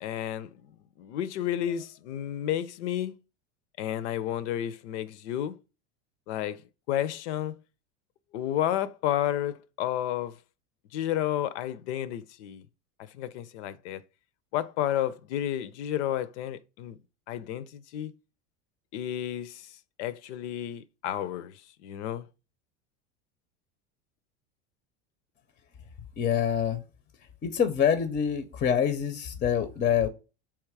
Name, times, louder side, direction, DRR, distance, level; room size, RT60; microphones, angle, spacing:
voice 1, 0.0-0.7 1.0-3.2 3.8-5.6 6.3-6.6 6.9-7.6 8.3-10.4 10.9-12.6 13.1-14.0 14.5-17.0 17.3-18.1 18.9-19.7 20.0-22.3, left 11 dB, 85° left, 0.6 m, -31 dB
voice 2, 26.2-26.8 27.4-30.1, left 8 dB, 25° left, 0.5 m, -26 dB
3.6 x 3.0 x 4.6 m
supercardioid pair, 125°, 33 cm